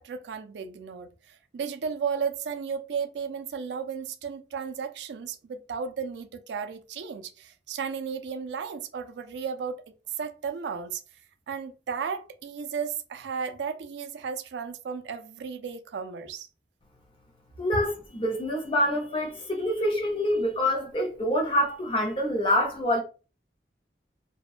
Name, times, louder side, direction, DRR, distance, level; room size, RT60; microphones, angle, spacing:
voice 1, 0.0-9.8 10.2-11.0 11.5-16.5, right 6 dB, 75° right, 0.3 m, -34 dB
voice 2, 17.6-23.0, left 1 dB, 30° left, 0.6 m, -26 dB
2.6 x 2.1 x 2.4 m
head